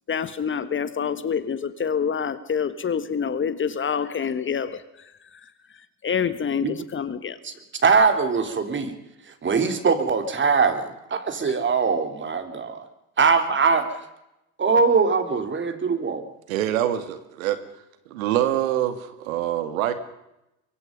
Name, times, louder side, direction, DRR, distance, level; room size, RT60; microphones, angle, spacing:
voice 1, 0.1-5.5 6.0-7.4 11.4-11.7, left 7 dB, 30° left, 13 dB, 1.6 m, -27 dB
voice 2, 7.8-8.9 9.3-12.8 13.2-14.0 14.6-16.3, right 5 dB, 30° right, 8 dB, 3.7 m, -22 dB
voice 3, 16.5-17.6 18.1-19.9, right 12 dB, 80° right, 10 dB, 2.5 m, -25 dB
24.0 x 23.0 x 5.4 m, 0.90 s
hypercardioid pair, 90°, 40 cm